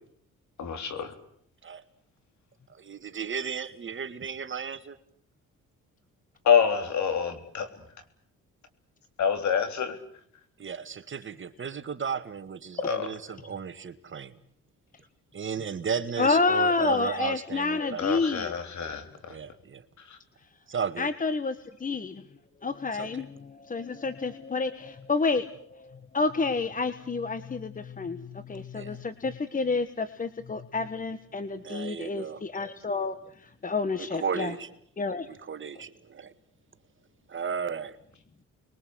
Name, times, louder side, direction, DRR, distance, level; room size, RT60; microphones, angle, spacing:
voice 1, 0.6-1.1 6.4-7.7 9.2-10.0 12.8-13.1 17.8-19.4 20.1-20.2, left 7 dB, 65° left, 8 dB, 3.6 m, -27 dB
voice 2, 2.7-5.0 10.6-14.4 15.3-18.2 19.3-19.8 20.7-21.1 22.9-23.2 28.7-28.9 31.6-32.4 34.0-34.7 35.3-36.3 37.3-38.0, right 6 dB, 40° right, 10 dB, 1.9 m, -34 dB
voice 3, 16.2-18.5 21.0-22.2 22.6-33.2 33.6-34.5 35.0-35.3, left 4 dB, 25° left, 12 dB, 1.4 m, -29 dB
30.0 x 22.0 x 8.0 m, 0.67 s
cardioid pair, 90°, 30 cm